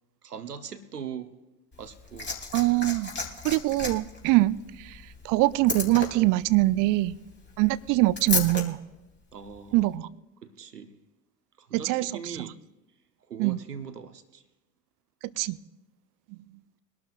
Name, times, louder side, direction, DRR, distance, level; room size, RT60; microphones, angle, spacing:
voice 1, 0.2-1.3 1.8-2.3 9.3-9.9 10.4-11.0 11.6-12.6 13.3-14.4, right 7 dB, 90° right, 1.0 m, -40 dB
Liquid, 1.7-8.6 9.7-9.8, left 3 dB, 25° left, 3.3 m, -34 dB
voice 2, 2.5-3.1 3.4-5.0 5.2-7.2 7.6-8.8 9.7-10.1 11.8-12.1 13.4-13.6 15.4-15.6, right 18 dB, 45° right, 0.6 m, -23 dB
22.5 x 12.0 x 2.5 m
figure-of-eight pair, 75°, 46 cm